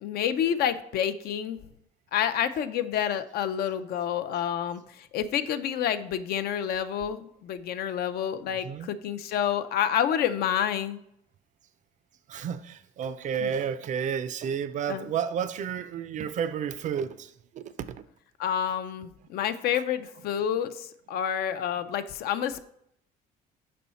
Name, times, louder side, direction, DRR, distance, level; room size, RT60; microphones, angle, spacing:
voice 1, 0.0-1.6 2.1-4.8 5.1-11.0 13.4-13.5 14.9-15.0 18.4-22.7, left 9 dB, 65° left, 0.4 m, -28 dB
voice 2, 8.4-8.9 12.3-18.0, right 8 dB, 45° right, 0.4 m, -32 dB
5.5 x 4.2 x 4.1 m
cardioid pair, 110°, 17 cm